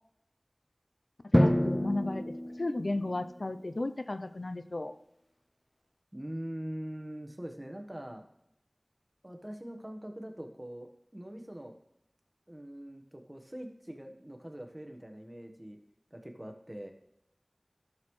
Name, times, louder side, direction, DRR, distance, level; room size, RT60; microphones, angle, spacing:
voice 1, 1.3-2.2 2.6-4.9, left 2 dB, 75° left, 10 dB, 0.5 m, -34 dB
Drum, 1.3-3.3, equal, 15° left, 0.5 m, -28 dB
voice 2, 6.1-8.2 9.2-11.7 12.5-15.8 16.1-16.9, right 1 dB, 25° right, 5 dB, 1.2 m, -43 dB
12.5 x 6.3 x 3.2 m, 0.80 s
wide cardioid pair, 40°, 0 cm